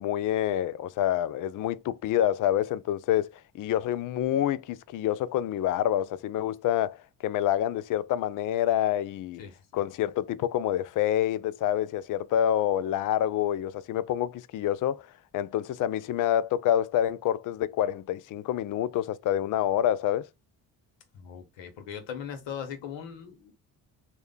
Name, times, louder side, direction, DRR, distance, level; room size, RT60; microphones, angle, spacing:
voice 1, 0.0-3.3 3.5-7.0 7.2-9.4 9.7-15.1 15.3-20.3, left 11 dB, 40° left, 0.4 m, -27 dB
voice 2, 21.1-23.5, left 8 dB, 60° left, 1.2 m, -39 dB
3.2 x 2.2 x 3.6 m
hypercardioid pair, 50°, 50 cm